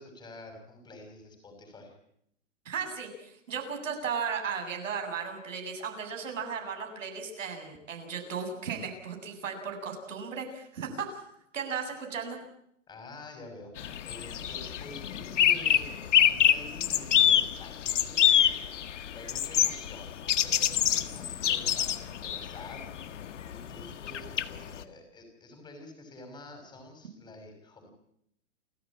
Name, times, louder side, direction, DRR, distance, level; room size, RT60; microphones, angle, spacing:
voice 1, 0.0-1.9 12.9-13.7 14.0-15.9 16.2-20.2 20.4-21.9 22.2-27.9, left 2 dB, 10° left, 5 dB, 6.0 m, -48 dB
voice 2, 2.7-11.2 11.5-12.4, right 6 dB, 80° right, 5 dB, 7.8 m, -35 dB
sound 1, 13.8-24.8, left 10 dB, 70° left, 1.8 m, -26 dB
29.0 x 14.5 x 8.8 m, 0.74 s
hypercardioid pair, 160°, 38 cm